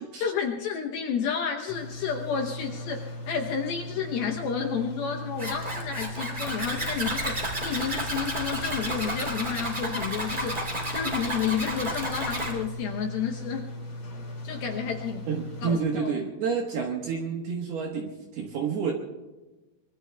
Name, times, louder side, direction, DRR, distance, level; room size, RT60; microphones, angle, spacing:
voice 1, 0.0-10.6 10.9-13.6 14.4-15.3 15.6-16.3, left 6 dB, 75° left, 1 dB, 2.3 m, -31 dB
sound 1, 1.7-15.7, left 1 dB, 35° left, 2.5 m, -38 dB
Zipper (clothing), 5.4-12.5, right 1 dB, 10° right, 2.7 m, -32 dB
voice 2, 15.3-18.9, right 6 dB, 65° right, 0 dB, 3.0 m, -29 dB
24.5 x 24.0 x 2.3 m, 1.1 s
omnidirectional pair, 5.4 m